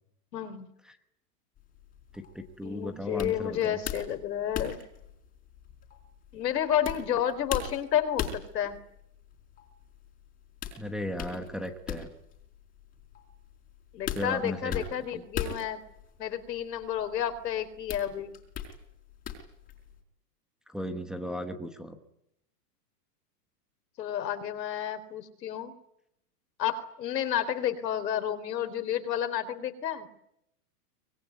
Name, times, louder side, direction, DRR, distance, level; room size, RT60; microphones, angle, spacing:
voice 1, 0.3-0.7 2.6-4.8 6.3-8.8 13.9-15.8 16.2-18.3 24.0-25.7 26.6-30.1, left 10 dB, 85° left, 10 dB, 4.0 m, -31 dB
sound 1, 1.6-20.0, left 8 dB, 15° left, 4.1 m, -40 dB
voice 2, 2.1-3.8 10.7-12.1 14.1-15.2 20.7-22.0, left 1 dB, ahead, 4 dB, 0.9 m, -36 dB
24.5 x 22.0 x 9.3 m, 0.77 s
supercardioid pair, 170°, 48 cm